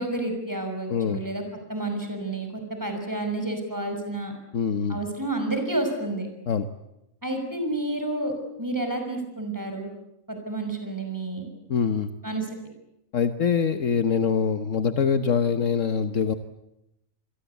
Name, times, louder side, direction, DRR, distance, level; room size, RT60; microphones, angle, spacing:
voice 1, 0.0-1.4 1.7-4.3 4.9-6.3 7.2-8.3 8.6-9.9 10.3-11.5 12.2-12.5, right 2 dB, 15° right, 5 dB, 6.1 m, -30 dB
voice 2, 0.9-1.2 4.5-5.0 6.5-6.7 11.7-12.1 13.1-16.3, left 6 dB, 65° left, 9 dB, 1.5 m, -24 dB
27.0 x 22.0 x 8.2 m, 0.86 s
omnidirectional pair, 1.4 m